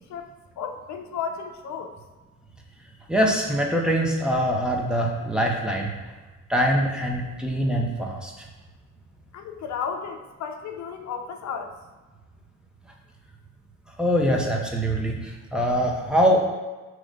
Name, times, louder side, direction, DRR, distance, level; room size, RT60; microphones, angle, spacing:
voice 1, 0.6-1.9 9.3-11.7, left 6 dB, 65° left, 5 dB, 0.6 m, -33 dB
voice 2, 3.1-5.9 6.5-8.3 14.0-16.4, equal, 5° right, -1 dB, 1.1 m, -23 dB
5.9 x 3.3 x 5.2 m, 1.2 s
cardioid pair, 90°, 30 cm